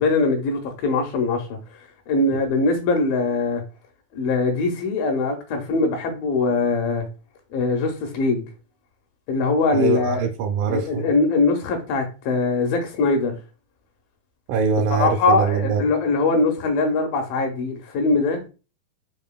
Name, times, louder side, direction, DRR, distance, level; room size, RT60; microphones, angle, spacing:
voice 1, 0.0-1.6 2.1-3.6 4.1-7.1 7.5-8.5 9.3-10.2 10.7-13.4 14.9-18.4, left 3 dB, 80° left, 2.3 m, -22 dB
voice 2, 9.7-11.1 14.5-15.8, right 6 dB, 80° right, 2.1 m, -23 dB
5.6 x 2.5 x 2.2 m
omnidirectional pair, 4.3 m